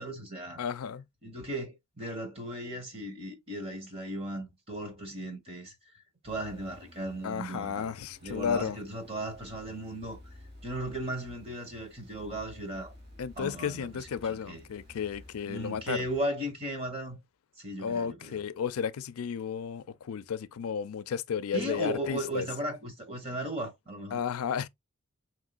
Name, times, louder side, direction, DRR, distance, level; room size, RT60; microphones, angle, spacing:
voice 1, 0.0-0.6 1.2-5.7 6.2-7.9 8.2-10.2 10.6-12.9 13.4-13.9 14.2-14.6 15.5-17.2 17.6-18.4 21.5-24.2, right 1 dB, 25° right, 1.3 m, -36 dB
voice 2, 0.6-1.0 7.2-8.8 13.2-16.1 17.8-22.5 24.1-24.7, left 7 dB, 90° left, 0.4 m, -33 dB
sound 1, 6.2-16.2, left 1 dB, 45° right, 2.8 m, -53 dB
4.8 x 3.7 x 2.3 m
head